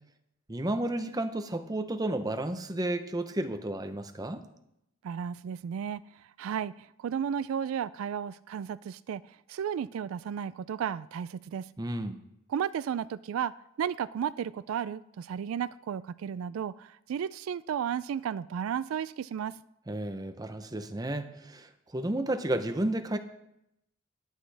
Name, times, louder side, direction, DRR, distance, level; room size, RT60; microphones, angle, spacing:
voice 1, 0.5-4.4 11.8-12.2 19.9-23.2, right 1 dB, 20° right, 8 dB, 0.7 m, -32 dB
voice 2, 5.0-6.0 6.4-11.7 12.5-13.5 13.8-19.6, right 8 dB, 90° right, 17 dB, 0.3 m, -33 dB
19.5 x 8.3 x 3.4 m, 0.83 s
head